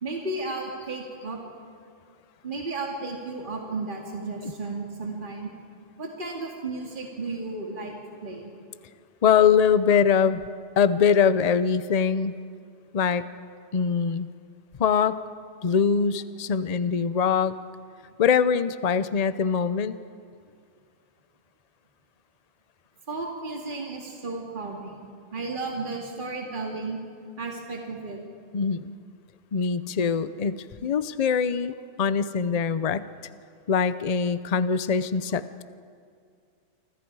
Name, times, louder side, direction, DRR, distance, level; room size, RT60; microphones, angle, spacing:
voice 1, 0.0-1.4 2.4-5.5 6.0-8.0 8.2-8.5 23.1-25.0 25.3-27.0 27.4-28.2, right 3 dB, 45° right, -1 dB, 2.5 m, -33 dB
voice 2, 9.2-10.4 10.8-12.3 12.9-13.2 13.7-14.3 14.8-15.2 15.6-17.5 18.2-20.0 28.5-29.0 29.5-33.1 33.7-35.4, left 6 dB, 40° left, 13 dB, 0.7 m, -23 dB
28.0 x 25.5 x 4.8 m, 2.2 s
omnidirectional pair, 1.2 m